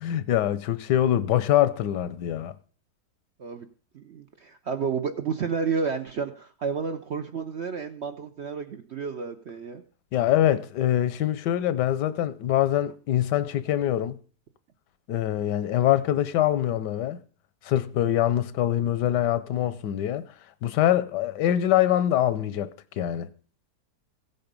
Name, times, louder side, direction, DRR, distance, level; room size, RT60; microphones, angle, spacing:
voice 1, 0.0-2.5 10.1-14.1 15.1-17.2 17.6-20.2 20.6-22.7 23.0-23.3, left 12 dB, 80° left, 1.3 m, -24 dB
voice 2, 3.9-9.8, right 5 dB, 60° right, 0.7 m, -31 dB
16.0 x 8.0 x 5.2 m
omnidirectional pair, 1.8 m